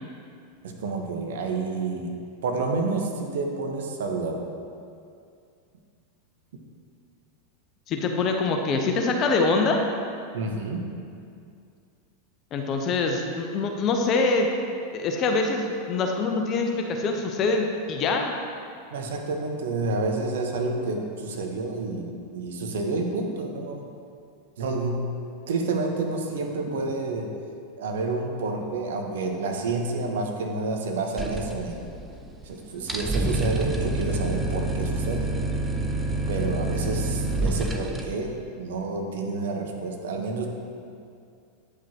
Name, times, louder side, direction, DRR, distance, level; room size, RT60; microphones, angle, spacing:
voice 1, 0.6-2.2 2.4-4.4 10.3-10.9 18.9-23.8 24.6-25.2 25.5-27.3 27.8-31.8 32.4-35.3 36.3-40.5, right 3 dB, 65° right, 3 dB, 0.8 m, -29 dB
voice 2, 7.9-9.8 12.5-14.5 14.9-18.3, left 3 dB, 40° left, 3 dB, 0.7 m, -24 dB
sound 1, 31.2-32.2 32.4-32.5 32.8-38.0, right 2 dB, 10° right, 0.5 m, -27 dB
9.1 x 4.8 x 2.9 m, 2.4 s
figure-of-eight pair, 90°, 0 cm